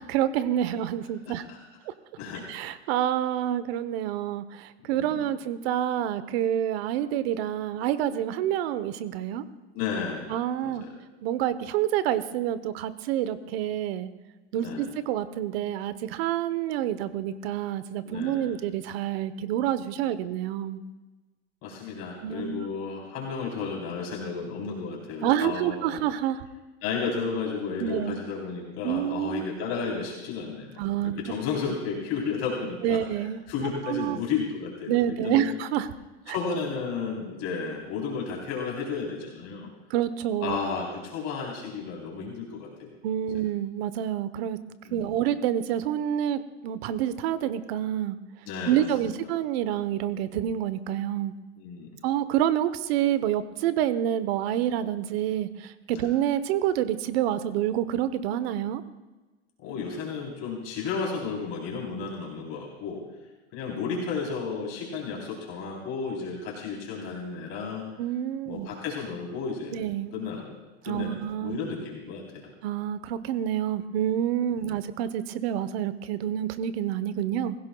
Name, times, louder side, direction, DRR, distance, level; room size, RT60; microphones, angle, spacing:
voice 1, 0.0-1.4 1.9-2.0 2.5-9.4 10.3-10.8 11.2-14.1 14.5-20.8 22.2-22.6 25.2-26.4 27.8-28.2 28.8-29.4 30.8-31.1 32.8-34.2 34.9-35.9 36.3-36.4 39.9-40.6 43.0-44.6 44.9-48.2 48.6-51.3 52.0-58.8 68.0-68.7 69.7-70.1 70.8-71.6 72.6-77.6, right 11 dB, 65° right, 13 dB, 1.0 m, -28 dB
voice 2, 1.3-1.6 2.2-2.5 4.9-5.2 9.7-10.3 10.6-10.9 14.6-14.9 18.0-18.5 21.6-26.0 26.8-33.0 33.5-35.5 36.3-39.7 40.4-42.9 44.8-45.2 48.5-49.1 51.6-51.9 55.9-56.1 59.6-63.0 63.5-67.8 68.5-69.7 70.1-70.6 70.8-72.5 74.5-74.8, left 5 dB, 50° left, -3 dB, 3.7 m, -33 dB
22.5 x 16.0 x 2.3 m, 1.2 s
hypercardioid pair, 110°, 32 cm